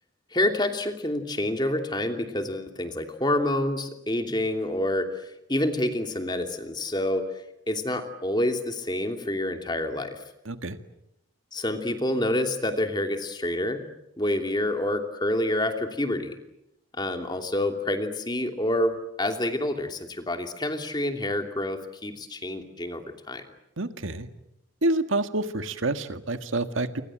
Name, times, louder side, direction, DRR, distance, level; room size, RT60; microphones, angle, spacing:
voice 1, 0.3-5.1 5.5-7.2 7.7-10.2 11.5-13.9 14.2-16.4 16.9-23.4, left 1 dB, 20° left, 5 dB, 2.9 m, -27 dB
voice 2, 10.5-10.8 23.8-24.3 24.8-27.0, right 2 dB, 85° right, 9 dB, 1.8 m, -28 dB
29.0 x 25.5 x 7.6 m, 0.83 s
head